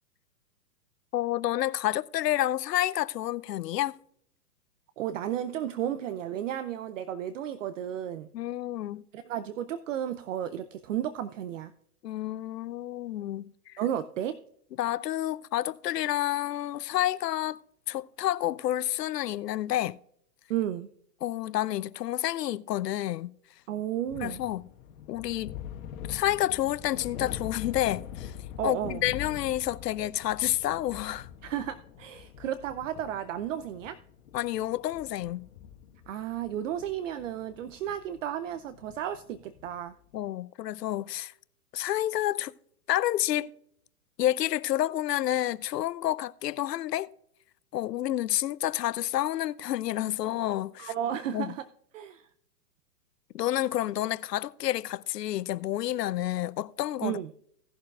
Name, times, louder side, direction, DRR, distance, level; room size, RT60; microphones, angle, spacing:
voice 1, 1.1-3.9 8.3-9.0 12.0-13.8 14.8-17.6 17.9-20.0 21.2-23.3 24.2-24.6 25.1-25.5 26.1-28.3 28.6-31.3 34.3-35.5 40.1-41.3 41.7-42.5 42.9-43.5 44.2-47.1 47.7-50.9 51.3-51.5 53.3-57.2, left 13 dB, 80° left, 0.6 m, -29 dB
voice 2, 5.0-8.3 9.1-11.7 13.8-14.4 20.5-20.9 23.7-24.4 28.6-29.0 31.4-34.0 36.1-39.9 50.8-51.7 51.9-52.3 57.0-57.3, right 10 dB, 50° right, 0.6 m, -33 dB
sound 1, 24.0-39.9, left 10 dB, 55° left, 1.5 m, -44 dB
17.5 x 6.7 x 2.4 m
hypercardioid pair, 140°, 48 cm